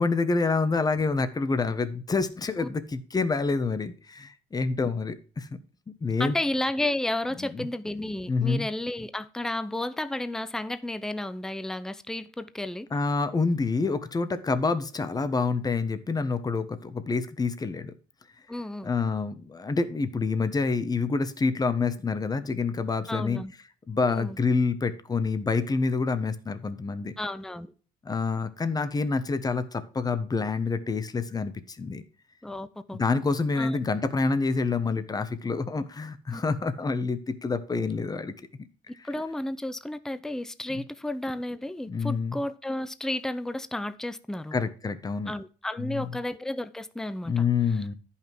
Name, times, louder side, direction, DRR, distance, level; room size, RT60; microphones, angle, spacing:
voice 1, 0.0-5.5 6.0-6.3 7.4-7.7 8.3-8.7 12.9-17.9 18.8-23.4 23.9-27.1 28.0-32.0 32.9-38.3 40.7-40.8 41.9-42.4 44.5-45.3 45.8-46.1 47.2-47.9, left 4 dB, 20° left, 1.1 m, -27 dB
voice 2, 6.2-12.9 18.5-18.9 23.1-23.5 24.1-24.4 27.2-27.7 32.4-33.0 33.6-33.8 36.3-36.4 39.0-44.6 45.3-47.4, left 1 dB, 5° left, 0.6 m, -32 dB
10.5 x 5.8 x 4.6 m
cardioid pair, 110°, 17 cm